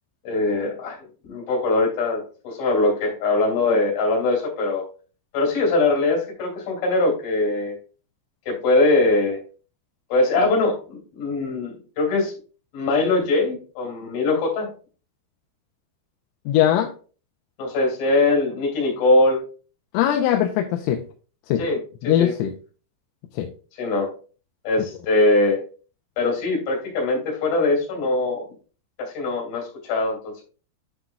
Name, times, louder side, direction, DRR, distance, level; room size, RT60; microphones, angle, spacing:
voice 1, 0.2-1.0 1.3-4.8 5.3-7.8 8.5-9.4 10.1-12.3 12.7-14.7 17.6-19.4 21.6-21.8 22.0-22.3 23.8-24.1 24.6-25.6 26.2-28.5 29.0-30.4, left 2 dB, 50° left, 3.8 m, -22 dB
voice 2, 16.5-16.9 19.9-21.0 21.5-21.6 22.0-22.5 23.4-23.5, left 11 dB, 85° left, 3.0 m, -20 dB
9.7 x 5.9 x 2.3 m
omnidirectional pair, 6.0 m